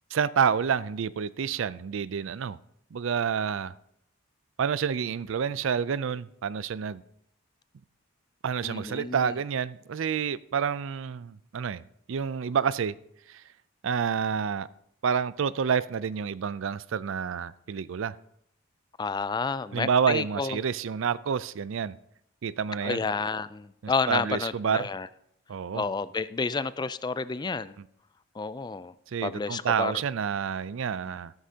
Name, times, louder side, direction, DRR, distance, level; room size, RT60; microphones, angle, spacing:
voice 1, 0.1-2.6 2.9-3.7 4.6-7.0 8.4-11.8 12.1-13.0 13.3-13.4 13.8-14.7 15.0-18.2 19.7-21.9 22.4-23.0 23.8-24.8 25.5-25.8 29.1-31.3, right 7 dB, 65° right, 0.4 m, -28 dB
voice 2, 8.6-9.3 19.0-20.6 22.8-25.1 25.7-27.8 28.4-28.9 29.2-29.9, left 4 dB, 20° left, 0.3 m, -30 dB
13.5 x 12.5 x 2.8 m
head